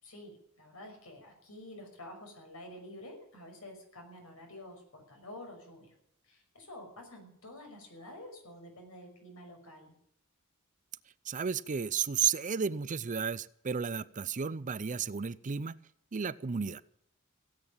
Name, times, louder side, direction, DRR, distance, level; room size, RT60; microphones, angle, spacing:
voice 1, 0.0-5.9 6.2-9.9, left 1 dB, 85° left, 3 dB, 5.9 m, -49 dB
voice 2, 11.2-15.8 16.1-16.8, right 7 dB, 35° right, 18 dB, 0.5 m, -33 dB
17.0 x 9.0 x 8.8 m, 0.74 s
head